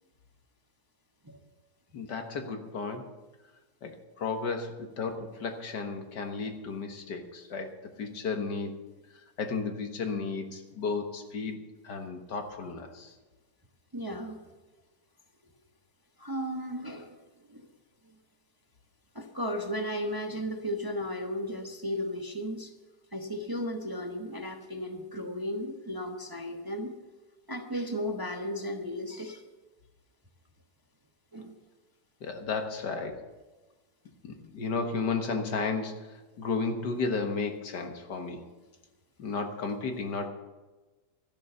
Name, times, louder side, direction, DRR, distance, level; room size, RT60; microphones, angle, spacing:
voice 1, 1.9-3.1 3.8-7.7 8.0-8.8 9.4-11.6 11.8-13.1 32.2-33.2 34.2-38.4 39.2-40.3, left 4 dB, 80° left, 5 dB, 2.0 m, -33 dB
voice 2, 13.9-14.4 16.2-17.2 17.5-17.7 19.1-22.7 23.1-27.0 27.5-29.4 31.3-31.5, equal, 15° right, 3 dB, 0.9 m, -35 dB
13.0 x 11.0 x 6.9 m, 1.2 s
omnidirectional pair, 1.8 m